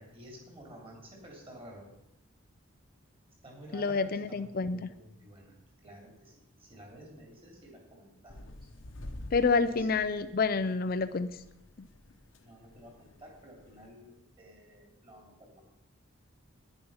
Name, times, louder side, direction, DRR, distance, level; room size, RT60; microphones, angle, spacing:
voice 1, 0.0-1.9 3.4-8.7 9.6-10.0 12.4-15.6, equal, 25° right, 0 dB, 3.2 m, -52 dB
voice 2, 3.7-4.9 9.3-11.4, left 4 dB, 45° left, 11 dB, 0.4 m, -28 dB
sound 1, 8.3-13.9, left 1 dB, 65° left, 1.0 m, -48 dB
10.5 x 10.0 x 5.6 m, 0.88 s
head